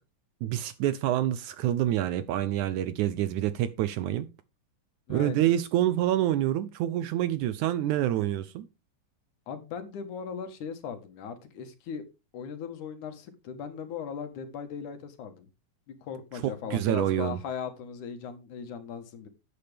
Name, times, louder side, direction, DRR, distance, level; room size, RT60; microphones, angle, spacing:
voice 1, 0.4-4.3 5.1-8.7 16.4-17.4, right 12 dB, 75° right, 1.9 m, -27 dB
voice 2, 5.1-5.5 9.5-12.0 12.3-15.5 15.9-19.3, left 7 dB, 65° left, 2.8 m, -38 dB
12.0 x 8.7 x 3.5 m
omnidirectional pair, 3.9 m